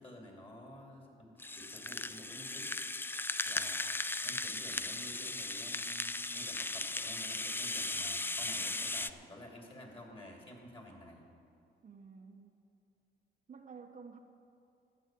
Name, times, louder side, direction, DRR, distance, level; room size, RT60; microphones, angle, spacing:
voice 1, 0.0-2.7 3.4-11.2, equal, 25° left, 0 dB, 3.1 m, -51 dB
Rattle (instrument), 1.4-9.1, left 2 dB, 10° left, 0.4 m, -37 dB
voice 2, 11.8-12.6 13.5-14.2, right 5 dB, 40° right, 4 dB, 0.9 m, -51 dB
13.0 x 7.2 x 9.1 m, 2.6 s
cardioid pair, 90°, 20 cm